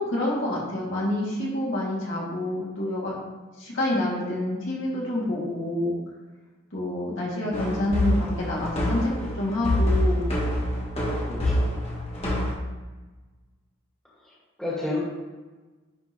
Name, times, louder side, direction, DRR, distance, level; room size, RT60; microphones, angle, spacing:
voice 1, 0.0-3.2 3.6-5.9 6.7-10.3, left 1 dB, 65° left, -5 dB, 2.1 m, -27 dB
sound 1, 7.5-12.5, equal, 30° left, 1.3 m, -26 dB
voice 2, 11.2-11.7 14.2-15.0, left 2 dB, 5° left, -8 dB, 1.7 m, -32 dB
10.0 x 3.9 x 3.0 m, 1.2 s
head